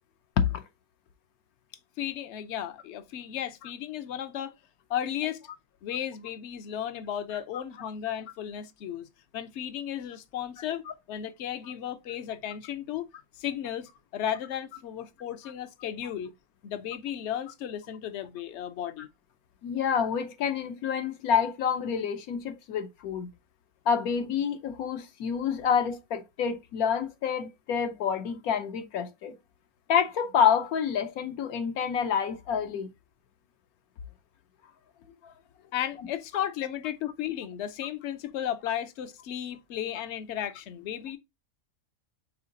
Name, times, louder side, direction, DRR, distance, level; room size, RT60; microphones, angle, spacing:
voice 1, 2.0-4.5 4.9-5.4 5.8-9.1 9.3-13.1 13.4-16.3 16.6-19.1 35.7-41.2, left 10 dB, 65° left, 0.8 m, -34 dB
voice 2, 19.6-23.3 23.9-29.3 29.9-32.9 35.2-35.3, left 7 dB, 80° left, 1.1 m, -28 dB
5.6 x 3.7 x 2.5 m
omnidirectional pair, 1.5 m